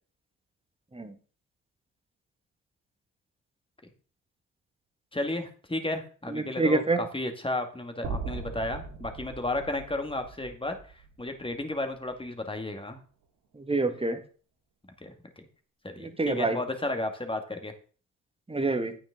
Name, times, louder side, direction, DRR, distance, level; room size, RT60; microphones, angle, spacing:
voice 1, 5.1-10.8 11.2-13.0 15.0-15.5 15.8-17.7, left 2 dB, 15° left, 6 dB, 2.3 m, -33 dB
voice 2, 6.3-7.0 13.6-14.2 16.0-16.6 18.5-19.0, right 2 dB, 15° right, 8 dB, 1.7 m, -27 dB
sound 1, 8.0-12.2, right 4 dB, 65° right, 2.4 m, -40 dB
9.7 x 8.9 x 3.9 m, 0.40 s
hypercardioid pair, 45°, 38 cm